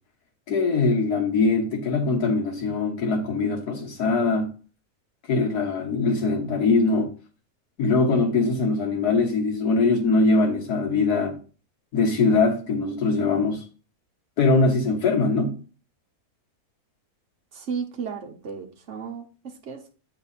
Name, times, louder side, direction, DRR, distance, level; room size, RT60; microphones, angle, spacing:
voice 1, 0.5-4.5 5.3-7.1 7.8-11.4 11.9-13.6 14.4-15.5, left 3 dB, 85° left, 1.9 m, -22 dB
voice 2, 17.5-19.9, right 6 dB, 55° right, 1.1 m, -34 dB
8.3 x 3.9 x 4.1 m
omnidirectional pair, 1.6 m